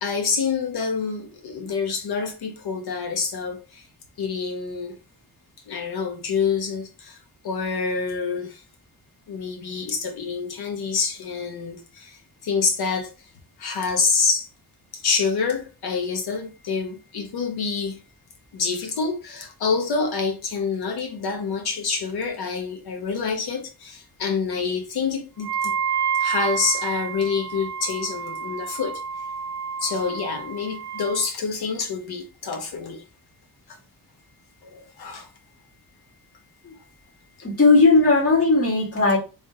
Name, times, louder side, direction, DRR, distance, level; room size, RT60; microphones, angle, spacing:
voice 1, 0.0-3.9 4.2-5.0 5.7-7.2 7.4-8.6 9.3-13.1 13.6-14.5 14.9-18.0 18.5-25.7 26.2-29.0 29.8-33.0 33.7-33.8 34.6-35.3, left 5 dB, 75° left, 1.0 m, -27 dB
Wind instrument woodwind instrument, 25.4-31.3, right 7 dB, 85° right, 0.7 m, -29 dB
voice 2, 37.4-39.2, left 3 dB, 35° left, 1.9 m, -17 dB
3.5 x 3.3 x 2.7 m
wide cardioid pair, 180°, 38 cm